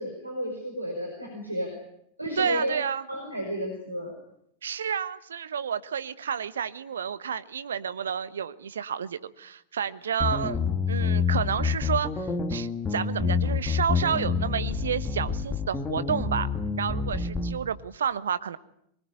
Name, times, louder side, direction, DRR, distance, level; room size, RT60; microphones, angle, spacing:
voice 1, 0.0-1.7 2.2-2.7 3.1-4.1, equal, 85° right, 3 dB, 5.1 m, -32 dB
voice 2, 2.4-3.0 4.6-10.6 10.9-16.5 16.8-18.6, right 7 dB, 65° right, 15 dB, 1.2 m, -30 dB
sound 1, 10.2-17.6, left 5 dB, 15° left, 2.5 m, -28 dB
24.0 x 21.0 x 9.8 m, 0.74 s
figure-of-eight pair, 90°, 0 cm